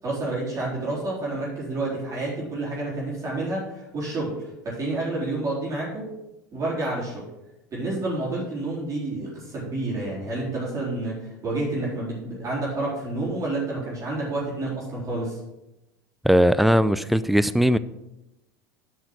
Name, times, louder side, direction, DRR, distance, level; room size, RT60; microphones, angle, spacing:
voice 1, 0.0-6.1 6.5-7.2 7.7-15.4, right 2 dB, 30° right, -6 dB, 4.1 m, -29 dB
voice 2, 16.2-17.8, equal, ahead, 14 dB, 0.4 m, -19 dB
7.9 x 6.3 x 6.3 m, 0.93 s
hypercardioid pair, 80°, 10 cm